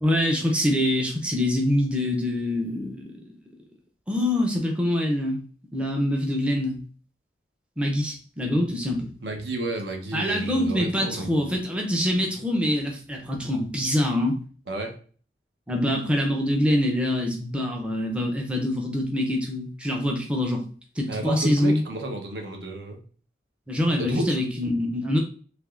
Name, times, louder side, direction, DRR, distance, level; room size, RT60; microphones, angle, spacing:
voice 1, 0.0-3.1 4.1-5.4 5.7-6.8 7.8-9.1 10.1-14.4 15.7-20.6 21.0-21.8 23.7-25.2, left 1 dB, 5° right, 0 dB, 0.5 m, -25 dB
voice 2, 9.2-11.5 14.7-15.0 21.1-23.0 24.0-24.4, right 2 dB, 70° right, 2 dB, 0.7 m, -31 dB
3.4 x 2.9 x 2.4 m, 0.42 s
head